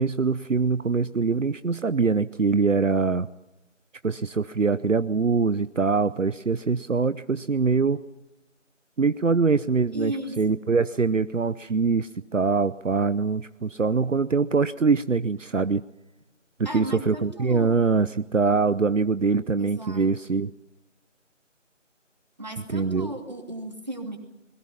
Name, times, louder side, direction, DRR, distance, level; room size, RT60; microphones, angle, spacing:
voice 1, 0.0-3.3 4.0-8.0 9.0-15.8 16.6-20.5 22.7-23.1, right 4 dB, 75° right, 14 dB, 0.8 m, -23 dB
voice 2, 9.9-10.6 16.6-17.8 19.6-20.1 22.4-24.2, right 1 dB, 35° right, 3 dB, 2.8 m, -35 dB
27.0 x 21.5 x 5.8 m, 0.99 s
figure-of-eight pair, 175°, 38 cm